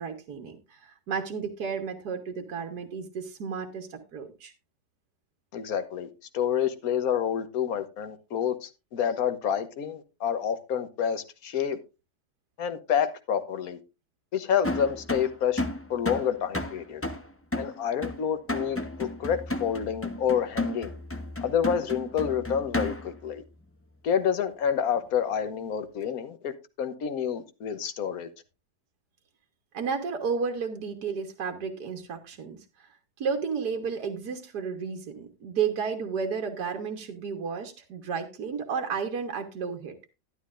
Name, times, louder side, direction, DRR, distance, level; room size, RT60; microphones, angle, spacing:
voice 1, 0.0-4.5 29.7-32.6 33.2-40.0, right 6 dB, 70° right, 1.8 m, -32 dB
voice 2, 5.5-6.1 6.3-11.8 12.6-13.8 14.3-15.6 15.9-17.0 17.6-20.9 21.4-23.4 24.0-26.5 26.8-28.3, left 8 dB, 60° left, 1.5 m, -28 dB
sound 1, 14.6-23.2, left 2 dB, 15° left, 0.6 m, -33 dB
11.5 x 11.5 x 2.5 m
omnidirectional pair, 1.8 m